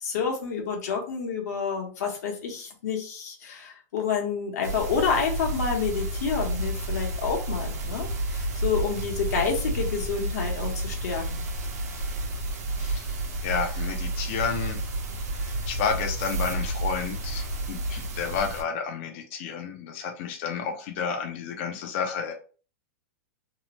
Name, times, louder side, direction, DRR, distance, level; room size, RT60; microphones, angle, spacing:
voice 1, 0.0-11.4, left 6 dB, 70° left, 1 dB, 1.1 m, -29 dB
sound 1, 4.6-18.6, right 2 dB, 65° right, 0.7 m, -31 dB
voice 2, 12.8-13.1 13.4-14.8 15.3-22.3, left 6 dB, 45° left, 2 dB, 0.5 m, -31 dB
2.9 x 2.0 x 2.9 m, 0.38 s
supercardioid pair, 165°, 9 cm